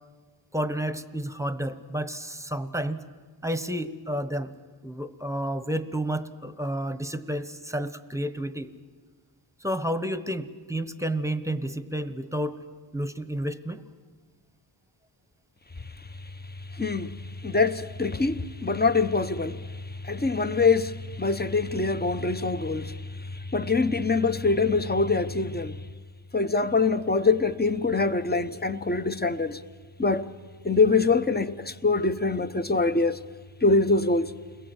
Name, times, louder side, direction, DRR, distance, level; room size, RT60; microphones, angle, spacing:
voice 1, 0.5-3.0 3.4-4.5 4.8-8.7 9.6-12.6 12.9-13.9, right 1 dB, 5° right, 1.1 m, -30 dB
voice 2, 16.8-17.1 17.4-19.6 20.1-22.9 23.5-25.8 26.3-29.6 30.0-30.3 30.6-33.2 33.6-34.3, left 3 dB, 20° left, 0.9 m, -24 dB
29.5 x 21.5 x 8.0 m
wide cardioid pair, 105°, 48 cm